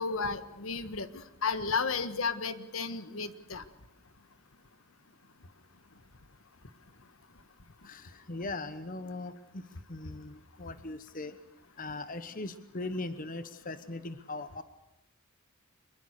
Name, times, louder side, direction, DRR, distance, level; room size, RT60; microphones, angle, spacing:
voice 1, 0.0-3.6, left 5 dB, 70° left, 12 dB, 1.5 m, -33 dB
voice 2, 7.8-11.4 11.8-14.6, left 2 dB, 40° left, 12 dB, 1.0 m, -40 dB
24.5 x 22.0 x 6.6 m, 0.92 s
head